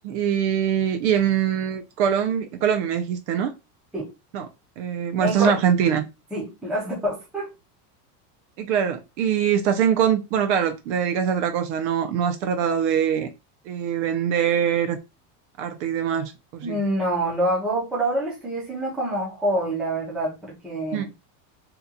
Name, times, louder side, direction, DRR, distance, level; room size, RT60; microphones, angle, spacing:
voice 1, 0.0-3.5 4.3-4.5 4.8-6.0 8.6-13.3 13.7-15.0 15.6-16.8 20.9-21.1, right 8 dB, 50° right, 0.5 m, -23 dB
voice 2, 5.2-6.0 6.3-7.5 16.6-21.1, right 1 dB, ahead, 0.5 m, -26 dB
2.9 x 2.2 x 3.7 m
supercardioid pair, 170°, 47 cm